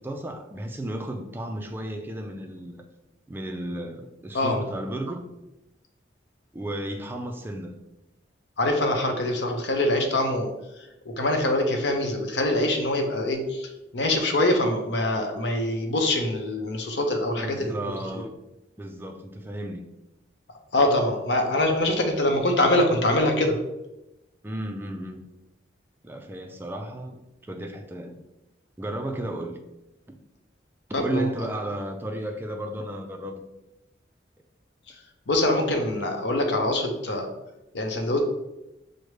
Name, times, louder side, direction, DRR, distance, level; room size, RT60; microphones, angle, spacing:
voice 1, 0.0-2.8 3.3-5.2 6.5-7.7 17.4-18.3 18.8-19.9 24.4-25.2 26.0-28.2 28.8-29.6 30.1-30.2 30.9-33.4, right 1 dB, 10° right, 4 dB, 0.3 m, -33 dB
voice 2, 8.6-10.5 11.0-17.7 20.7-23.6 30.9-31.3 35.3-37.3 37.7-38.2, left 1 dB, 70° left, 3 dB, 0.7 m, -24 dB
6.2 x 2.1 x 3.2 m, 0.93 s
head